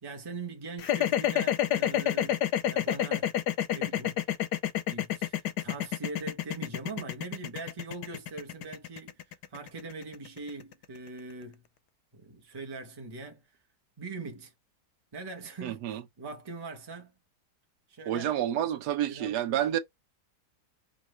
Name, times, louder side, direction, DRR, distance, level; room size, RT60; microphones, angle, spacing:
voice 1, 0.0-3.4 3.7-4.2 4.9-11.6 12.1-13.4 14.0-14.5 15.1-17.1 17.9-18.3 19.1-19.8, right 3 dB, 20° right, 0.7 m, -42 dB
sound 1, 0.8-11.0, left 11 dB, 90° left, 1.3 m, -29 dB
voice 2, 15.6-16.0 18.1-19.8, right 11 dB, 80° right, 1.3 m, -29 dB
5.3 x 2.4 x 3.2 m
omnidirectional pair, 1.7 m